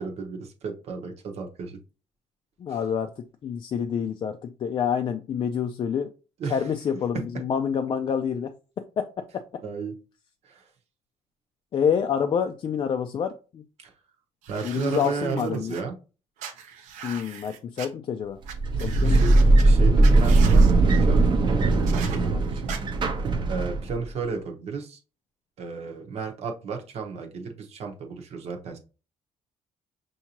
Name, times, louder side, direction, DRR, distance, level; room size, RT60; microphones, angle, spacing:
voice 1, 0.0-1.8 2.7-2.8 6.4-6.6 9.6-10.0 10.4-10.6 13.8-13.9 14.5-15.9 19.0-19.3 19.6-22.7 23.5-25.0 25.6-28.8, right 5 dB, 60° right, 3 dB, 1.0 m, -33 dB
voice 2, 2.6-6.1 6.5-8.5 8.8-9.2 11.7-13.6 14.6-15.8 17.0-18.4 18.8-19.2 22.3-22.4, left 7 dB, 40° left, 6 dB, 0.4 m, -27 dB
sound 1, 14.4-15.8 16.4-17.9 18.5-18.6 18.8-19.6 20.0-20.7 21.9-22.2 22.7-22.8, right 7 dB, 90° right, 0.8 m, -39 dB
sound 2, 18.5-24.1, right 2 dB, 40° right, 0.7 m, -19 dB
5.7 x 2.7 x 2.9 m, 0.34 s
cardioid pair, 130°, 12 cm